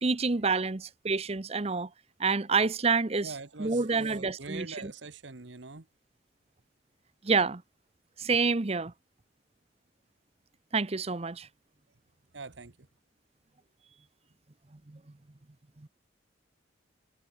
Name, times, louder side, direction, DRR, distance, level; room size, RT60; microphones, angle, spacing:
voice 1, 0.0-1.9 2.2-3.3 3.6-4.9 7.2-7.6 8.2-8.9 10.7-11.5 14.9-15.0 15.8-15.9, right 4 dB, 35° right, 0.8 m, -28 dB
voice 2, 3.2-5.9 12.3-12.9, right 4 dB, 70° right, 1.2 m, -43 dB
head